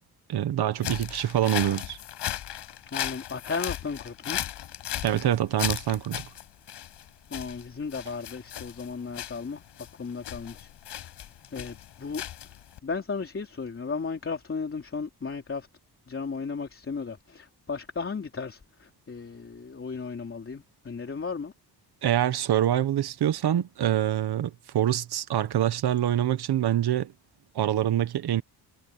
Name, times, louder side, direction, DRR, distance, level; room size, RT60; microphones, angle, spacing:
voice 1, 0.3-2.0 5.0-6.2 22.0-27.1 27.5-28.4, right 11 dB, 70° right, 1.4 m, -25 dB
sound 1, 0.8-12.8, left 12 dB, 90° left, 7.2 m, -36 dB
voice 2, 2.9-4.5 7.3-9.6 10.0-11.1 11.5-12.2 12.5-15.7 16.1-21.5, left 5 dB, 30° left, 3.5 m, -35 dB
cardioid pair, 115°, 41 cm